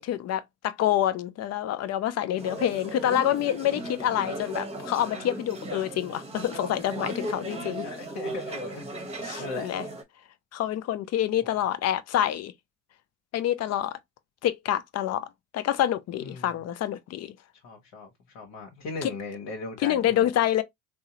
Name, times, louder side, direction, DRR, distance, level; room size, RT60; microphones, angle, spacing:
voice 1, 0.0-7.9 9.2-9.8 10.5-12.5 13.3-13.9 14.4-15.3 15.5-17.3 19.0-19.1 19.8-20.6, left 11 dB, 40° left, 0.5 m, -27 dB
voice 2, 2.2-2.6 7.6-9.1 9.4-9.7 16.2-16.5 17.6-18.1 18.3-20.3, left 3 dB, 65° left, 1.0 m, -38 dB
sound 1, 2.4-10.0, right 1 dB, 15° right, 1.0 m, -37 dB
3.5 x 2.1 x 2.8 m
hypercardioid pair, 60°, 39 cm